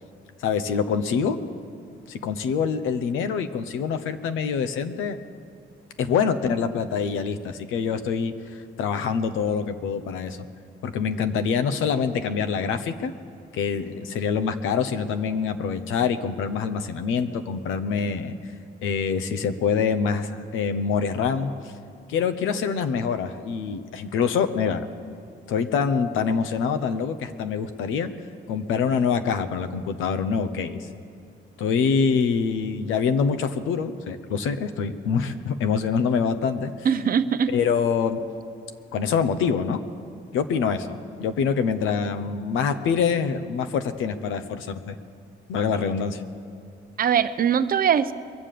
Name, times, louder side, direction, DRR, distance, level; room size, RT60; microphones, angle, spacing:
voice 1, 0.4-1.4 2.1-5.2 6.0-10.4 10.8-13.1 13.5-18.4 18.8-21.7 22.1-24.9 25.5-28.1 28.5-30.8 31.6-36.7 37.5-38.2 38.9-39.8 40.3-44.9 45.5-46.2, left 6 dB, 90° left, 9 dB, 0.8 m, -25 dB
voice 2, 36.8-37.6 47.0-48.1, right 8 dB, 45° right, 13 dB, 0.6 m, -21 dB
22.5 x 7.5 x 6.7 m, 2.3 s
cardioid pair, 90°, 20 cm